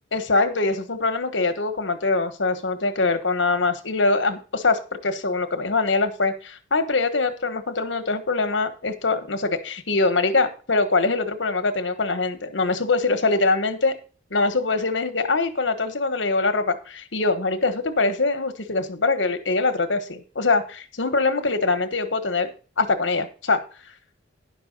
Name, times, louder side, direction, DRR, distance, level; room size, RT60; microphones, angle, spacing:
voice 1, 0.1-14.0 14.3-22.5 22.8-23.6, left 3 dB, 75° left, 9 dB, 1.3 m, -23 dB
10.5 x 6.1 x 5.3 m, 0.38 s
head